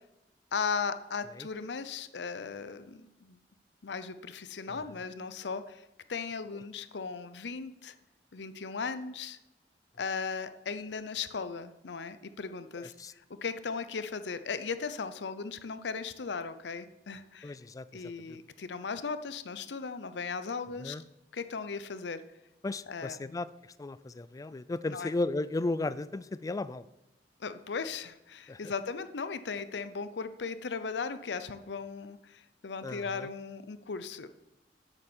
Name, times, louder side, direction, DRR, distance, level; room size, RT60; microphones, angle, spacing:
voice 1, 0.5-3.4 3.8-5.8 6.1-7.9 8.3-9.4 10.0-17.6 17.9-21.0 21.3-22.2 22.9-23.3 24.9-25.1 27.4-34.3, left 5 dB, 75° left, 12 dB, 0.6 m, -37 dB
voice 2, 12.8-13.1 17.4-18.4 20.8-21.0 22.6-23.5 23.8-26.8 28.5-28.7 32.8-33.3, left 2 dB, 20° left, 16 dB, 0.3 m, -35 dB
8.0 x 7.0 x 7.2 m, 0.93 s
head